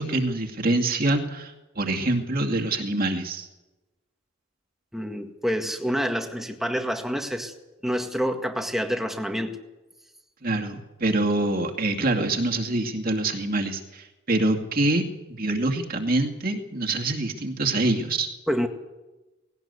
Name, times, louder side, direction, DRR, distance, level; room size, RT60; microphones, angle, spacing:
voice 1, 0.0-3.5 10.4-18.3, right 2 dB, 45° right, 2 dB, 2.4 m, -25 dB
voice 2, 4.9-7.5 7.8-9.6 18.5-18.7, equal, ahead, 4 dB, 1.7 m, -27 dB
19.0 x 17.5 x 8.3 m, 1.1 s
head